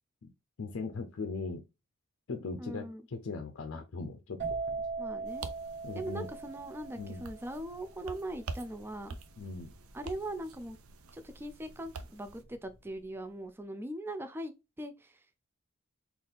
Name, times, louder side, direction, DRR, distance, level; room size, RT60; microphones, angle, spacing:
voice 1, 0.6-1.6 2.3-4.4 4.7-4.9 5.8-6.3 7.0-7.3 9.4-9.7, left 4 dB, 60° left, 0.5 m, -39 dB
voice 2, 2.6-3.0 5.0-5.4 5.9-9.2 9.9-10.8 11.1-15.2, right 1 dB, 10° right, 0.3 m, -40 dB
sound 1, 4.4-12.0 12.2-12.7, right 4 dB, 55° right, 1.3 m, -40 dB
sound 2, 5.3-12.4, right 4 dB, 75° right, 0.5 m, -47 dB
4.0 x 2.4 x 3.4 m
head